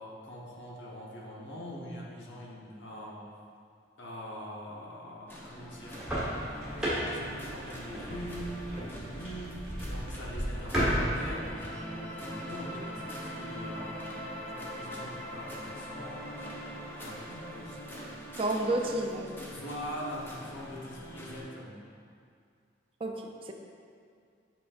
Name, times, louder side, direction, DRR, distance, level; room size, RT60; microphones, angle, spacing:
voice 1, 0.0-3.2 4.0-6.0 7.1-8.6 8.8-16.6 17.0-18.1 19.5-21.8, equal, 80° left, -3 dB, 1.1 m, -43 dB
sound 1, 5.3-21.4, equal, 10° left, 0.6 m, -43 dB
sound 2, 5.8-11.5, equal, 5° right, 1.4 m, -34 dB
voice 2, 18.4-19.4 23.0-23.5, right 1 dB, 30° right, 2 dB, 0.4 m, -31 dB
7.6 x 5.2 x 2.5 m, 2.3 s
head